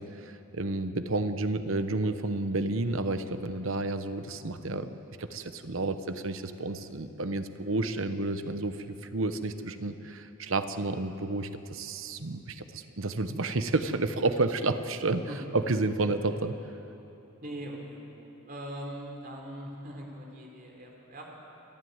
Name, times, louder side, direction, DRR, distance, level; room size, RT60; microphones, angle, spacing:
voice 1, 0.0-15.3 15.5-16.5, right 2 dB, 70° right, 10 dB, 1.0 m, -31 dB
voice 2, 17.4-21.3, equal, 40° right, 0 dB, 3.4 m, -41 dB
28.0 x 11.0 x 9.6 m, 3.0 s
head